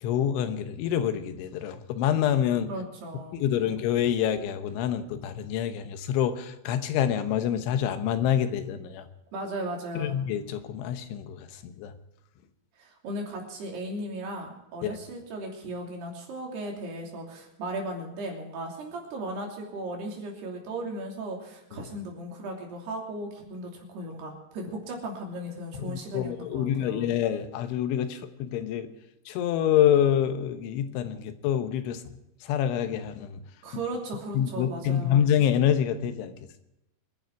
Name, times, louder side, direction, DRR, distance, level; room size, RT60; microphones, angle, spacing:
voice 1, 0.0-2.7 3.3-9.1 10.0-11.9 14.8-14.9 25.8-28.9 29.3-32.0 32.5-33.4 34.4-36.3, left 10 dB, 85° left, 9 dB, 3.5 m, -26 dB
voice 2, 2.7-3.4 9.3-10.2 12.8-27.1 33.6-35.3, right 1 dB, 60° right, 0 dB, 4.9 m, -36 dB
25.0 x 11.0 x 4.6 m, 0.89 s
omnidirectional pair, 5.3 m